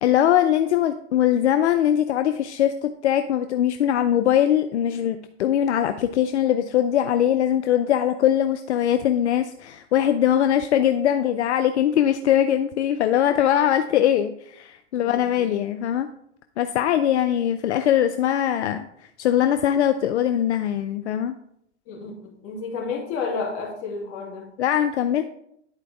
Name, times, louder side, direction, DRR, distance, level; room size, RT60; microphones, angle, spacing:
voice 1, 0.0-16.1 16.6-18.9 19.2-21.3 24.6-25.2, left 10 dB, 75° left, 8 dB, 0.6 m, -21 dB
voice 2, 14.9-15.5 21.9-24.5, left 4 dB, 40° left, -2 dB, 2.7 m, -31 dB
11.0 x 4.6 x 3.4 m, 0.74 s
hypercardioid pair, 100°, 34 cm